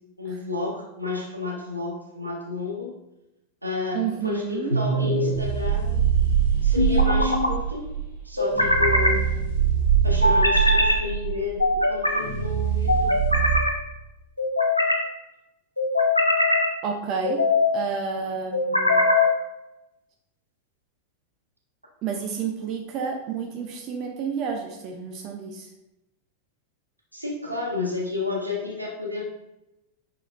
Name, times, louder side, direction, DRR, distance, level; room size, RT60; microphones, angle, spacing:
voice 1, 0.2-2.9 3.6-6.0 6.6-7.9 8.2-9.3 10.0-13.1 27.1-29.2, left 4 dB, 85° right, -2 dB, 1.3 m, -31 dB
voice 2, 3.9-4.8 16.8-17.4 17.7-19.1 22.0-25.7, right 6 dB, 40° right, 3 dB, 0.6 m, -30 dB
sound 1, 4.7-5.4 6.8-7.5 8.4-9.2 10.2-11.0 11.6-12.2 12.9-13.7 14.4-15.0 15.8-16.7 17.2-17.8 18.5-19.3, left 2 dB, 85° left, 0.7 m, -21 dB
sound 2, 5.3-13.6, right 8 dB, 65° left, 1.6 m, -23 dB
5.8 x 4.7 x 3.4 m, 0.94 s
figure-of-eight pair, 90°, 0 cm